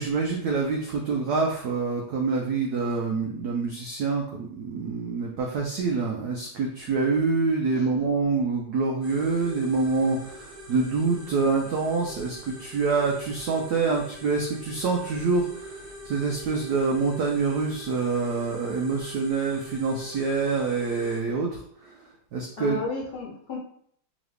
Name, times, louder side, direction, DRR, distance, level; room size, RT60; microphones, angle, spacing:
voice 1, 0.0-22.8, right 4 dB, 90° right, 1 dB, 0.8 m, -26 dB
sound 1, 9.0-21.2, equal, 50° right, 0.6 m, -44 dB
voice 2, 22.6-23.6, left 3 dB, 65° left, -2 dB, 1.3 m, -33 dB
3.8 x 3.0 x 3.3 m, 0.65 s
omnidirectional pair, 2.3 m